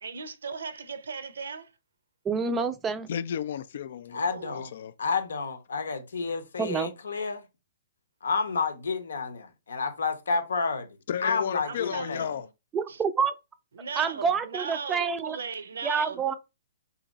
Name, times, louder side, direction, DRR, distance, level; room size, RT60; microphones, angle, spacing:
voice 1, 0.0-1.7 4.1-4.6 11.6-12.5 12.9-13.0 13.7-16.2, right 5 dB, 80° right, 0.5 m, -37 dB
voice 2, 2.3-3.1 6.6-6.9 12.7-13.3 14.0-15.4 15.8-16.4, right 5 dB, 15° right, 0.4 m, -27 dB
voice 3, 3.1-4.2 4.5-4.9 11.1-12.5, left 8 dB, 60° left, 0.3 m, -32 dB
voice 4, 4.1-4.7 5.0-7.4 8.2-10.9 11.2-12.3, left 4 dB, 80° left, 0.8 m, -30 dB
2.8 x 2.6 x 3.9 m
hypercardioid pair, 130°, 0 cm